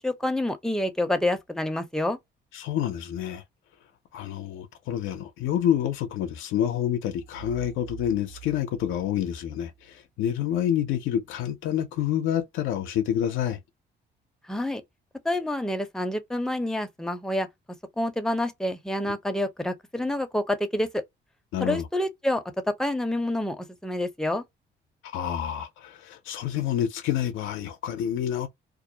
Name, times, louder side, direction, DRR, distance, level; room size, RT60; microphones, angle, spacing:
voice 1, 0.0-2.2 14.5-14.8 15.2-17.5 18.0-21.0 21.6-24.4, left 1 dB, 5° left, 0.5 m, -28 dB
voice 2, 2.5-3.4 4.1-13.6 21.5-21.9 25.0-28.5, left 10 dB, 90° left, 0.5 m, -28 dB
sound 1, 7.1-9.9, right 11 dB, 65° right, 0.4 m, -46 dB
2.4 x 2.1 x 2.6 m
cardioid pair, 90°, 20 cm